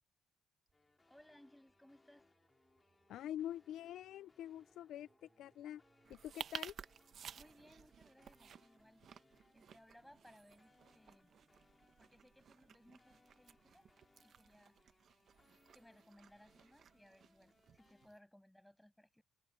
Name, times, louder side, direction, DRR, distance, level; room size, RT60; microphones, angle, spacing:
sound 1, 0.7-18.1, left 3 dB, 25° left, 2.7 m, -73 dB
Singing, 0.7-15.4, right 4 dB, 30° right, 4.6 m, -78 dB
voice 1, 1.1-2.3 7.3-9.1 9.5-11.3 12.0-13.9 14.2-14.8 15.7-19.2, left 1 dB, 5° left, 6.6 m, -64 dB
voice 2, 3.1-5.8 6.1-6.7, left 11 dB, 80° left, 0.4 m, -46 dB
sound 2, 6.0-18.2, right 8 dB, 60° right, 0.9 m, -55 dB
cardioid pair, 90°, 0 cm